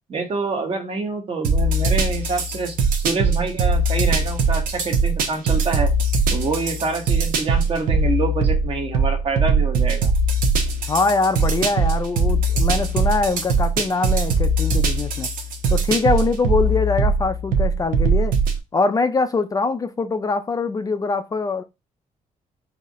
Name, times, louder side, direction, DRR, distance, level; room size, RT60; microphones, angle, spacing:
voice 1, 0.1-5.9 6.3-10.1, right 3 dB, 40° right, 1.2 m, -26 dB
sound 1, 1.4-18.6, right 3 dB, 85° right, 0.9 m, -21 dB
voice 2, 10.9-15.3 15.7-18.3 18.7-21.6, left 3 dB, 25° left, 0.4 m, -23 dB
3.9 x 2.8 x 4.1 m
cardioid pair, 130°, 14 cm